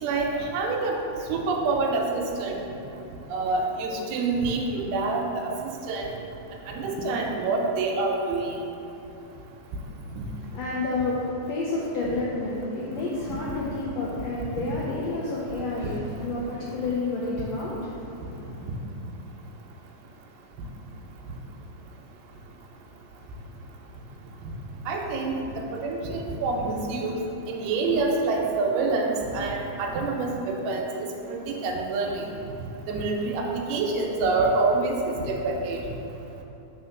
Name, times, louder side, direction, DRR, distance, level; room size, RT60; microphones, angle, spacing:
voice 1, 0.0-1.0 1.3-2.6 3.3-6.1 6.7-8.6 13.3-13.4 15.8-15.9 24.9-25.3 25.7-27.2 27.5-30.9 31.3-32.3 32.9-35.8, right 3 dB, 80° right, 0 dB, 2.3 m, -26 dB
voice 2, 10.5-18.7, left 2 dB, 85° left, -7 dB, 1.4 m, -30 dB
4.7 x 4.3 x 5.8 m, 2.8 s
omnidirectional pair, 3.9 m